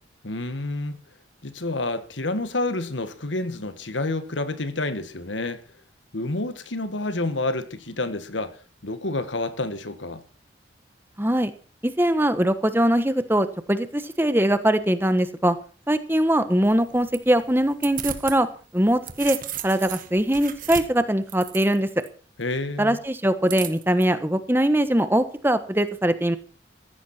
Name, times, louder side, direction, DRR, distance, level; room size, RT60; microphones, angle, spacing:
voice 1, 0.2-1.0 1.4-5.6 6.1-10.2 22.4-23.0, left 2 dB, 90° left, 1.7 m, -29 dB
voice 2, 11.2-11.5 11.8-15.6 15.9-18.5 18.7-19.4 19.6-21.9 22.8-26.4, right 1 dB, 10° right, 1.2 m, -22 dB
sound 1, 16.6-18.4 18.8-22.1 23.5-24.0, right 10 dB, 45° right, 1.7 m, -35 dB
16.0 x 14.5 x 4.4 m
head